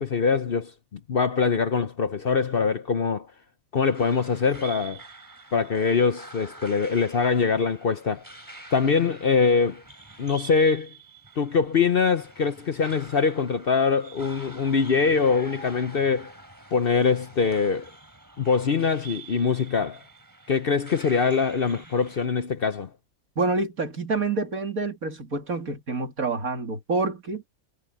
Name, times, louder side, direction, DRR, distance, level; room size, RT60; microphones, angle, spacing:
voice 1, 0.0-3.3 3.7-5.0 5.5-8.2 8.7-9.8 10.2-10.9 11.4-16.3 16.7-17.9 18.4-20.0 20.5-22.9, left 5 dB, 50° left, 0.8 m, -23 dB
sound 1, 3.8-22.3, right 2 dB, 15° right, 3.4 m, -46 dB
voice 2, 23.4-27.4, right 3 dB, 75° right, 3.2 m, -27 dB
omnidirectional pair, 1.5 m